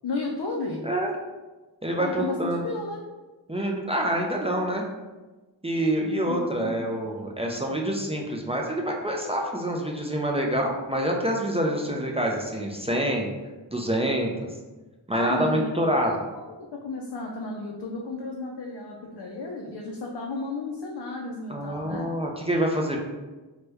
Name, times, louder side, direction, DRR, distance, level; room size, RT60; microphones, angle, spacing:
voice 1, 0.0-0.8 2.0-3.0 6.2-6.9 7.4-7.7 15.1-22.1, left 3 dB, 65° left, -1 dB, 0.5 m, -33 dB
voice 2, 1.8-2.6 3.5-4.9 5.6-13.3 13.7-14.3 15.1-16.1 21.5-23.0, right 1 dB, 15° right, 0 dB, 0.4 m, -26 dB
2.9 x 2.2 x 3.3 m, 1.2 s
wide cardioid pair, 40°, 44 cm